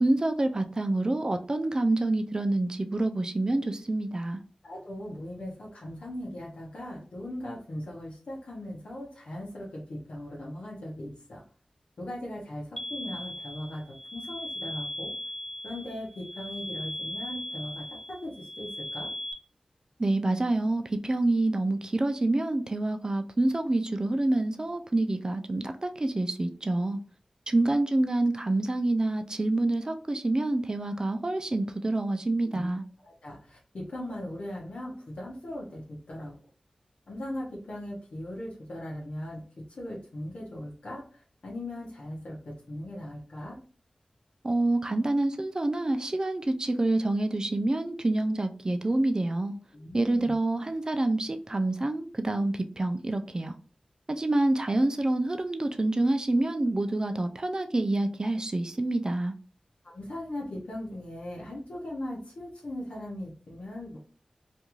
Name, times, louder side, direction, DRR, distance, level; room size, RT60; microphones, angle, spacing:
voice 1, 0.0-4.4 20.0-27.0 27.5-32.8 44.4-49.6 49.9-53.5 54.1-59.3, right 2 dB, 35° right, 7 dB, 0.4 m, -27 dB
voice 2, 4.6-11.4 12.0-15.1 15.6-19.1 32.4-32.7 33.0-36.3 37.1-39.4 39.7-43.6 49.7-50.3 59.8-64.0, left 1 dB, 80° left, -5 dB, 0.8 m, -39 dB
sound 1, 12.8-19.3, left 1 dB, 15° left, 0.5 m, -38 dB
2.5 x 2.3 x 2.9 m, 0.40 s
cardioid pair, 45°, 2 cm